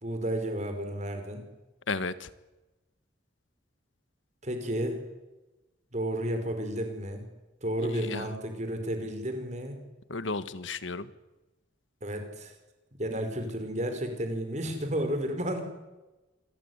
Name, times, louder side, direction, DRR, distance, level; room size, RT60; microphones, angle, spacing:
voice 1, 0.0-1.4 4.4-5.0 5.9-7.3 7.6-9.8 12.0-12.6 13.0-15.6, right 1 dB, 40° right, 6 dB, 5.2 m, -32 dB
voice 2, 1.9-2.3 7.9-8.3 10.1-11.1, left 3 dB, 90° left, 13 dB, 1.5 m, -33 dB
27.0 x 19.0 x 9.8 m, 1.1 s
head